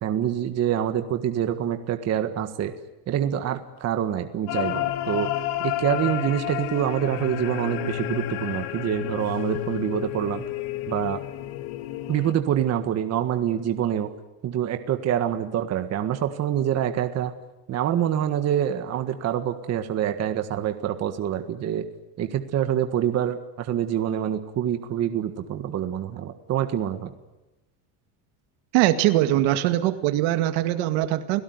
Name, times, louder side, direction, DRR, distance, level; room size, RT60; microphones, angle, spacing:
voice 1, 0.0-2.7 3.1-5.3 5.6-10.4 10.9-11.2 12.1-14.1 14.4-17.3 17.7-21.8 22.2-27.1, right 10 dB, 35° right, 8 dB, 1.7 m, -26 dB
sound 1, 4.5-12.3, left 14 dB, 80° left, 2.3 m, -30 dB
voice 2, 28.7-31.4, right 14 dB, 75° right, 9 dB, 2.2 m, -22 dB
30.0 x 17.5 x 9.5 m, 1.0 s
cardioid pair, 160°, 44 cm